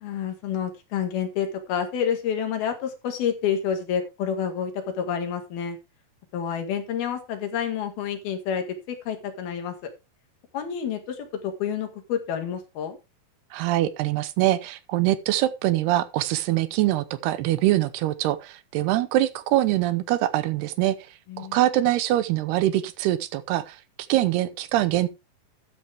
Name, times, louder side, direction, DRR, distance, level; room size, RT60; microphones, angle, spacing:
voice 1, 0.0-5.8 6.3-9.8 10.5-11.2 11.4-13.0 21.3-21.6, left 8 dB, 65° left, 3.7 m, -29 dB
voice 2, 13.5-21.0 21.4-23.8 24.1-25.1, right 14 dB, 80° right, 2.8 m, -23 dB
13.0 x 9.2 x 3.4 m
omnidirectional pair, 4.8 m